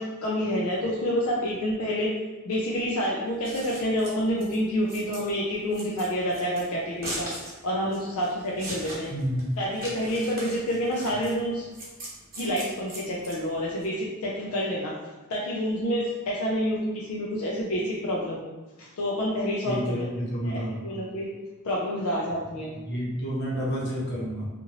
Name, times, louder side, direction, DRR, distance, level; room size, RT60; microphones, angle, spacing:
voice 1, 0.0-2.1 2.4-7.3 7.6-9.1 9.6-11.7 12.4-15.0 15.3-18.4 18.8-20.1 20.4-21.3 21.6-22.7, equal, 85° left, -4 dB, 0.4 m, -28 dB
Scissors, 3.3-13.9, right 1 dB, 45° right, 1.0 m, -40 dB
voice 2, 9.1-9.5 19.6-20.8 22.7-24.5, equal, 55° left, -7 dB, 1.1 m, -30 dB
2.9 x 2.5 x 2.8 m, 1.1 s
head